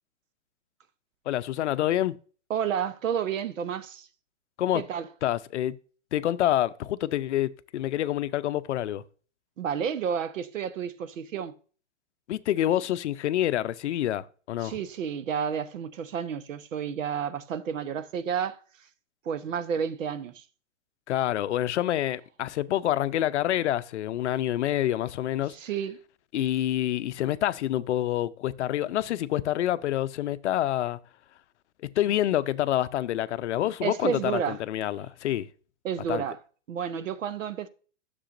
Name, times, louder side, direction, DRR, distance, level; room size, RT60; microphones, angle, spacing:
voice 1, 1.3-2.2 4.6-4.8 5.2-5.8 6.1-9.0 12.3-14.8 21.1-25.5 26.3-31.0 31.8-35.5 36.1-36.2, left 12 dB, 60° left, 0.6 m, -27 dB
voice 2, 2.5-4.1 4.7-5.1 9.6-11.5 14.6-18.6 19.3-20.4 25.5-26.0 33.8-34.6 35.8-36.4 36.7-37.7, right 8 dB, 75° right, 0.9 m, -31 dB
10.0 x 6.8 x 2.5 m
hypercardioid pair, 145°, 38 cm